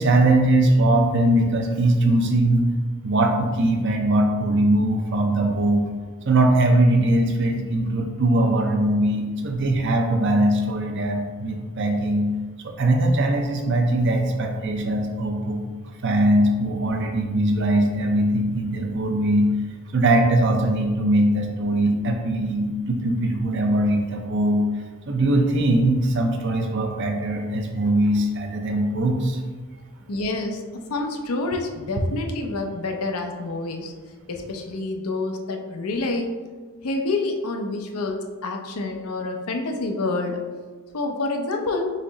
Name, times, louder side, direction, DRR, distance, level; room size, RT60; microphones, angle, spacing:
voice 1, 0.0-2.7 3.0-5.9 6.2-12.3 12.6-15.6 16.0-19.5 19.9-29.4, right 1 dB, 55° right, 3 dB, 0.6 m, -21 dB
voice 2, 30.1-30.6 30.9-33.9 34.3-36.3 36.8-40.4 40.9-41.9, left 2 dB, 80° left, 3 dB, 0.6 m, -27 dB
4.1 x 3.1 x 3.8 m, 1.4 s
head